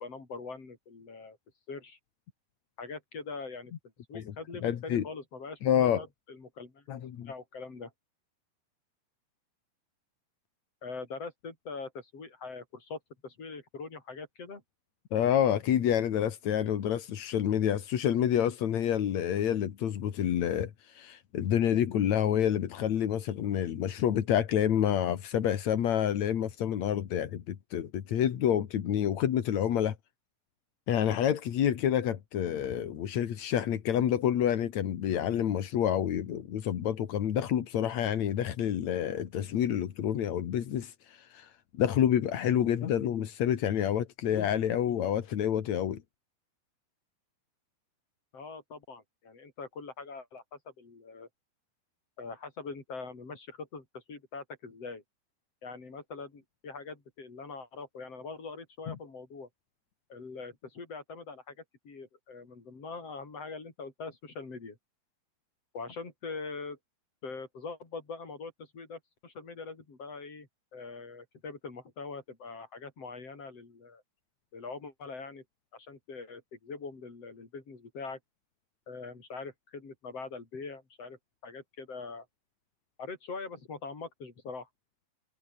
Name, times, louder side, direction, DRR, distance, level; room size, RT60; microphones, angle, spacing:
voice 1, 0.0-1.4 1.7-2.0 2.8-3.7 4.1-6.8 7.2-7.9 10.8-14.6 48.3-51.3 52.2-55.0 55.6-59.5 60.1-61.6 61.8-64.8 65.7-66.8 67.2-74.0 74.5-75.4 75.7-78.2 78.9-82.3 83.0-84.7, left 4 dB, 35° left, 6.0 m, -43 dB
voice 2, 4.6-5.0 5.6-6.0 6.9-7.3 15.1-30.0 30.9-46.0 58.9-59.0, left 9 dB, 55° left, 2.4 m, -28 dB
omnidirectional pair, 5.0 m